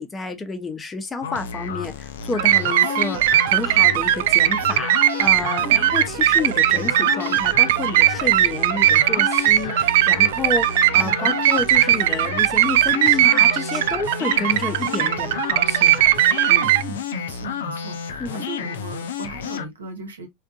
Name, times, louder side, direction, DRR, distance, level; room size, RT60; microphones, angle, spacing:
voice 1, 0.0-16.2 18.2-18.5, left 3 dB, 20° left, 0.8 m, -30 dB
sound 1, 1.2-19.7, left 7 dB, 70° left, 0.5 m, -32 dB
sound 2, 2.4-16.8, right 13 dB, 60° right, 0.3 m, -19 dB
voice 2, 2.8-3.2 5.6-5.8 10.9-11.4 16.5-20.3, right 4 dB, 80° right, 1.0 m, -36 dB
3.4 x 2.4 x 2.4 m
figure-of-eight pair, 80°, 0 cm